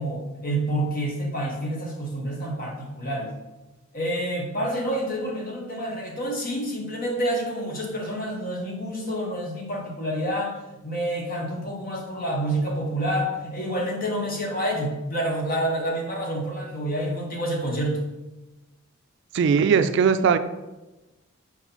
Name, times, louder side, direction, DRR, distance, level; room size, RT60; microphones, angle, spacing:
voice 1, 0.0-3.3 3.9-10.5 10.8-18.0, right 1 dB, 40° left, 0 dB, 1.2 m, -28 dB
voice 2, 19.3-20.4, right 6 dB, 55° right, 10 dB, 0.3 m, -19 dB
4.4 x 4.3 x 5.6 m, 1.1 s
head